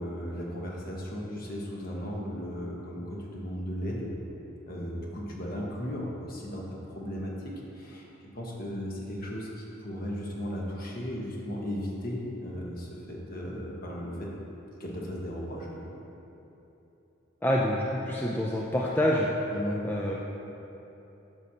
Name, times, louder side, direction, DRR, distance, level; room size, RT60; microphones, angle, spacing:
voice 1, 0.0-4.2 4.7-8.1 8.3-14.3 14.8-15.8 19.5-19.9, equal, 45° left, -3 dB, 1.1 m, -36 dB
voice 2, 17.4-19.3 19.8-20.1, equal, 10° left, -3 dB, 0.4 m, -27 dB
10.5 x 6.4 x 2.8 m, 3.0 s
head